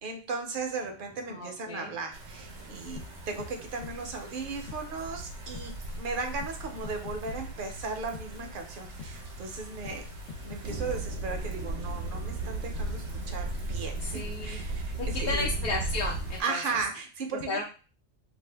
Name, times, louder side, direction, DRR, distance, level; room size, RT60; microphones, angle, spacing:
voice 1, 0.0-10.0 10.4-15.5 16.4-17.6, right 4 dB, 60° right, 4 dB, 0.7 m, -36 dB
sound 1, 0.5-17.0, equal, 20° left, 0.3 m, -57 dB
voice 2, 1.3-1.9 14.0-14.6 15.0-16.6 17.5-17.6, left 2 dB, 65° left, -3 dB, 0.7 m, -33 dB
sound 2, 2.1-16.4, right 2 dB, 85° right, 1.0 m, -37 dB
sound 3, 3.0-3.1 3.4-3.5 3.8-4.0 4.7-4.8 5.5-5.7 6.4-6.5 6.8-7.4 8.1-8.3 9.0-9.1 9.9-10.0 10.3-10.9, left 5 dB, 90° left, 1.0 m, -42 dB
2.6 x 2.3 x 3.3 m, 0.35 s
omnidirectional pair, 1.2 m